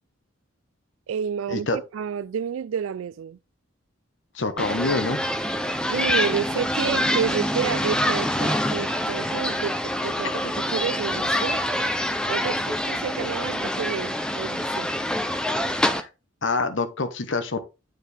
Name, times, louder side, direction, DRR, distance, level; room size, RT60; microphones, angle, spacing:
voice 1, 1.1-3.4 5.6-11.6 12.0-14.9, right 7 dB, 80° right, 0.3 m, -30 dB
voice 2, 4.3-5.2 16.0-16.1 16.4-17.6, left 3 dB, 65° left, 0.9 m, -26 dB
sound 1, 4.6-16.0, left 1 dB, 5° left, 0.4 m, -26 dB
9.0 x 4.4 x 3.3 m
head